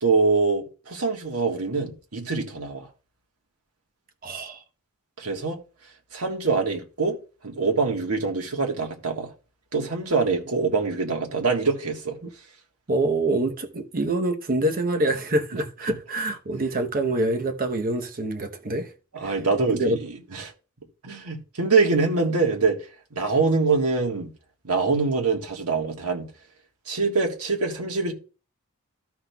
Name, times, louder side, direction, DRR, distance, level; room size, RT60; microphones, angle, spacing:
voice 1, 0.0-2.9 5.2-5.6 6.1-7.2 7.4-9.3 9.7-12.2 16.5-16.6 19.1-20.5 21.0-22.8 23.1-24.3 24.6-26.3 26.9-28.1, right 4 dB, 85° right, 1.5 m, -24 dB
voice 2, 4.2-4.6 12.2-12.3 12.9-18.9 19.2-19.4 19.7-20.0, right 2 dB, 40° right, 0.9 m, -26 dB
14.0 x 5.8 x 2.3 m
head